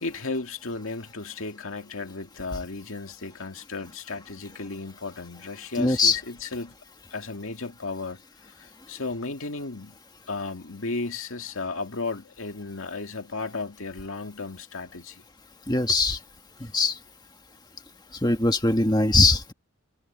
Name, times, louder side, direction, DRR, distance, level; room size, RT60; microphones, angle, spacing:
voice 1, 0.0-6.7 7.1-10.0 10.3-15.2 16.6-16.7, left 3 dB, 80° left, 2.1 m, -34 dB
voice 2, 5.8-6.2 15.7-16.2 16.6-17.0 18.2-19.5, left 3 dB, 20° left, 1.6 m, -21 dB
head